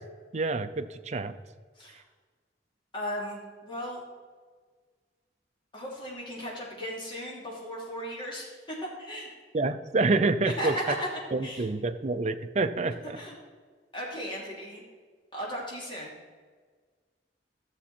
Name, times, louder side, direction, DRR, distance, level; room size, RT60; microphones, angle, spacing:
voice 1, 0.3-1.3 9.5-10.8 11.3-13.2, right 3 dB, 40° right, 9 dB, 0.5 m, -27 dB
voice 2, 2.9-4.0 5.7-9.3 10.6-11.1 11.4-11.7 13.1-13.3 13.9-14.8 15.3-16.1, equal, 30° left, -4 dB, 2.9 m, -36 dB
13.0 x 7.0 x 4.3 m, 1.5 s
head